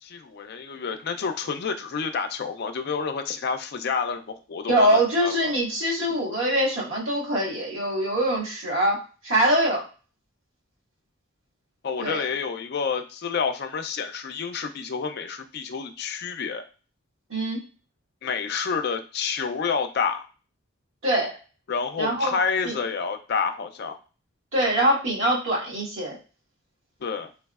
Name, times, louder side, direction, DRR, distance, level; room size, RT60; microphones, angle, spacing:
voice 1, 0.0-5.5 11.8-16.6 18.2-20.3 21.7-24.0 27.0-27.3, left 5 dB, 50° left, 7 dB, 0.3 m, -29 dB
voice 2, 4.7-9.8 12.0-12.2 17.3-17.6 21.0-21.3 22.0-22.3 22.6-22.7 24.5-26.1, right 1 dB, 80° right, -5 dB, 1.5 m, -23 dB
3.4 x 3.0 x 2.3 m, 0.36 s
head